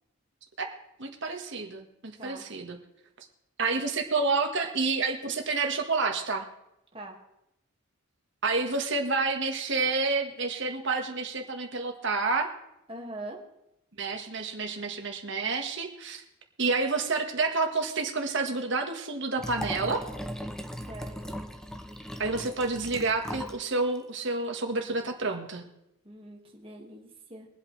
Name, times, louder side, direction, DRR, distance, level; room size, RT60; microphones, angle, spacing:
voice 1, 0.6-2.8 3.6-6.5 8.4-12.5 14.0-16.2 16.6-20.0 22.2-25.6, right 3 dB, 55° right, 4 dB, 1.6 m, -29 dB
voice 2, 12.9-13.4 20.9-21.3 26.0-27.5, right 1 dB, 25° right, 0 dB, 1.9 m, -42 dB
Liquid, 19.4-23.6 24.0-24.1, equal, 5° left, 0.5 m, -38 dB
23.5 x 8.2 x 3.3 m, 0.85 s
head